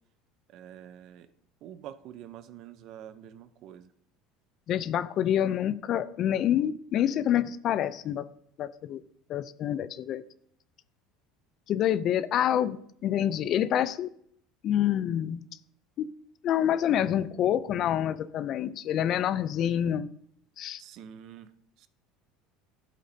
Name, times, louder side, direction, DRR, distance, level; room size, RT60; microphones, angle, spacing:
voice 1, 0.5-1.3 1.6-3.9 20.8-21.5 21.8-21.9, right 10 dB, 60° right, 13 dB, 0.7 m, -46 dB
voice 2, 4.7-8.3 8.6-9.0 9.3-10.2 11.7-14.1 14.6-15.4 16.0-16.1 16.4-20.1 20.6-20.8, left 10 dB, 50° left, 16 dB, 0.5 m, -27 dB
12.0 x 7.6 x 2.8 m, 0.69 s
supercardioid pair, 100°, 0 cm